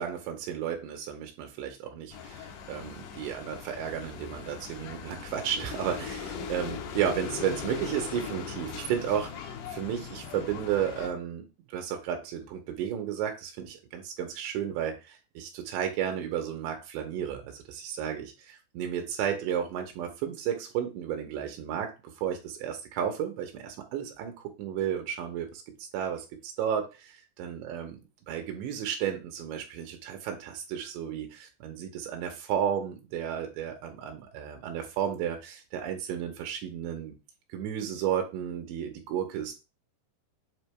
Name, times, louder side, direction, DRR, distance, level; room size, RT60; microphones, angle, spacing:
voice 1, 0.0-21.9 22.2-24.3 24.6-25.6 25.9-27.1 27.4-28.0 28.3-37.1 37.5-39.6, right 9 dB, 85° right, 4 dB, 3.1 m, -33 dB
sound 1, 2.1-11.1, left 6 dB, 75° left, 2.8 m, -39 dB
8.3 x 3.6 x 3.3 m, 0.29 s
omnidirectional pair, 5.2 m